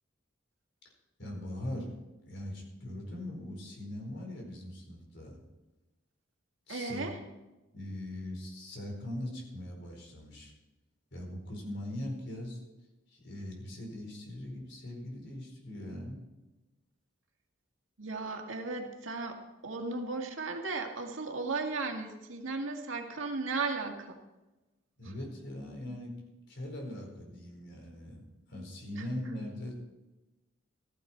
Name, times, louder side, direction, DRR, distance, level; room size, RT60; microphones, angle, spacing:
voice 1, 1.2-5.4 6.7-7.1 7.7-10.5 11.1-12.6 13.1-16.2 25.0-26.2 26.5-28.2 28.5-29.7, left 1 dB, 60° left, 1 dB, 4.9 m, -41 dB
voice 2, 6.7-7.2 18.0-24.2 29.0-29.1, right 3 dB, 80° right, 3 dB, 2.0 m, -36 dB
15.0 x 15.0 x 4.6 m, 1.0 s
head